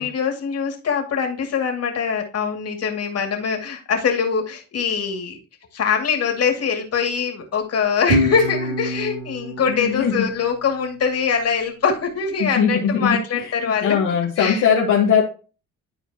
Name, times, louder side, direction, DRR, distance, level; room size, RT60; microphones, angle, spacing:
voice 1, 0.0-5.4 5.7-14.0 14.4-14.7, left 6 dB, 55° left, 3 dB, 2.2 m, -23 dB
Guitar, 8.1-11.3, equal, 70° right, 1.8 m, -27 dB
voice 2, 9.7-10.3 12.4-15.2, left 7 dB, 80° left, -1 dB, 1.3 m, -20 dB
11.5 x 4.5 x 2.8 m, 0.35 s
cardioid pair, 90°, 30 cm